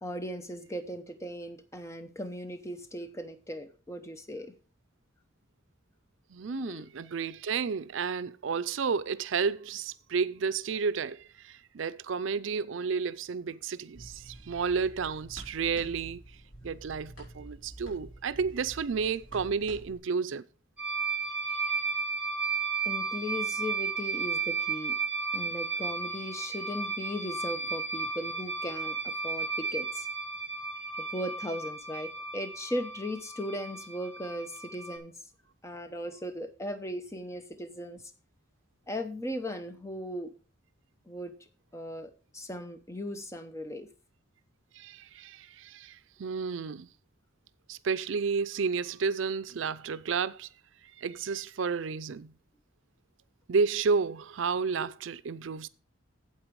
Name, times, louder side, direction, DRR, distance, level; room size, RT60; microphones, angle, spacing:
voice 1, 0.0-4.5 6.4-6.9 22.8-24.9 25.3-30.1 31.0-35.1 35.6-38.0 38.9-40.3 41.1-41.3 41.7-43.9 54.8-54.9, equal, 15° left, 0.8 m, -38 dB
voice 2, 6.3-16.2 16.6-20.4 21.4-21.7 44.7-46.9 47.7-50.5 51.0-52.3 53.5-55.7, right 5 dB, 75° right, 0.5 m, -31 dB
sound 1, 13.9-20.0, right 1 dB, 80° left, 4.6 m, -48 dB
sound 2, 20.8-35.0, right 4 dB, 5° right, 2.2 m, -34 dB
8.7 x 8.0 x 4.7 m
head